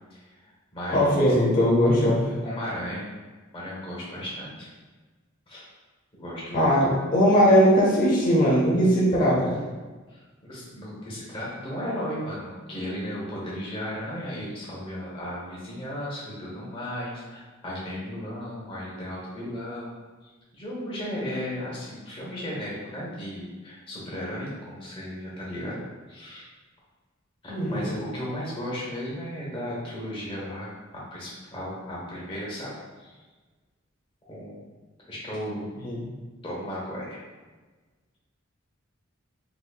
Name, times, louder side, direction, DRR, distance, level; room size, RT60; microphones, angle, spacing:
voice 1, 0.1-1.4 2.4-3.1 3.5-4.7 5.5-5.7 6.2-7.2 7.4-7.5 10.1-19.9 20.2-26.5 27.4-33.2 34.3-34.6 35.0-35.7 36.4-37.2, equal, 25° left, -6 dB, 1.0 m, -35 dB
voice 2, 0.9-2.3 6.5-9.5 27.5-27.8 35.8-36.0, equal, 40° left, -5 dB, 0.7 m, -20 dB
4.1 x 2.7 x 2.3 m, 1.3 s
head